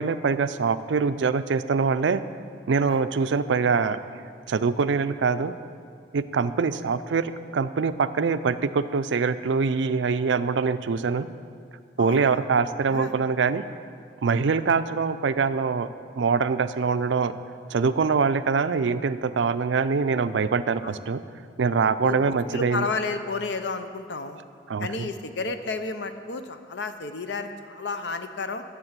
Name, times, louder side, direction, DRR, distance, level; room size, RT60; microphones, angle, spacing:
voice 1, 0.0-2.2 2.7-4.0 4.5-5.5 6.1-11.3 12.0-13.6 14.2-15.9 16.2-17.4 17.7-21.2 21.6-22.9 24.7-25.1, right 5 dB, 90° right, 12 dB, 0.4 m, -24 dB
voice 2, 12.0-12.4 12.9-13.1 20.8-21.0 22.0-22.2 22.5-24.4 24.8-28.6, left 3 dB, 75° left, 9 dB, 0.7 m, -31 dB
11.0 x 6.9 x 7.4 m, 2.2 s
head